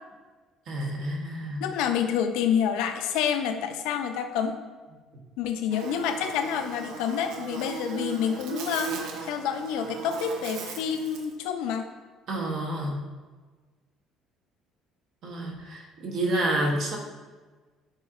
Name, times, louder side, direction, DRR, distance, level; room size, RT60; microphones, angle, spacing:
voice 1, 0.7-1.6 12.3-13.0 15.2-17.0, right 1 dB, 50° right, 0 dB, 0.8 m, -29 dB
voice 2, 1.6-4.5 5.4-8.9 9.2-11.9, left 8 dB, 90° left, 7 dB, 0.4 m, -28 dB
Buzz, 5.7-11.3, right 6 dB, 70° right, 0.5 m, -37 dB
7.3 x 2.7 x 2.4 m, 1.3 s
cardioid pair, 150°, 0 cm